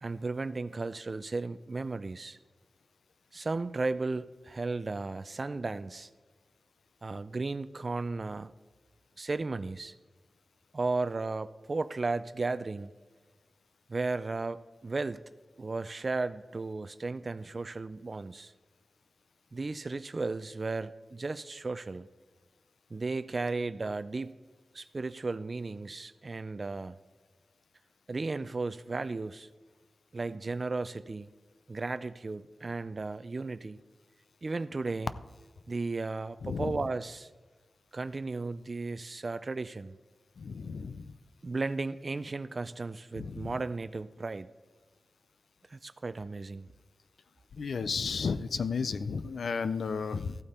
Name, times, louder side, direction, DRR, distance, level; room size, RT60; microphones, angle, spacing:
voice 1, 0.0-2.4 3.3-6.1 7.0-8.5 9.2-9.9 10.7-12.9 13.9-15.2 15.6-18.5 19.5-22.1 22.9-24.3 24.7-27.0 28.1-29.5 30.1-31.3 31.7-33.8 34.4-35.1 35.7-37.3 37.9-40.0 41.4-44.5 45.7-46.7, right 3 dB, 45° right, 14 dB, 0.4 m, -35 dB
voice 2, 36.4-36.8 40.4-41.1 43.2-43.5 47.5-50.4, left 5 dB, 85° left, 13 dB, 0.5 m, -33 dB
14.5 x 8.6 x 4.3 m, 1.4 s
wide cardioid pair, 85°, 0 cm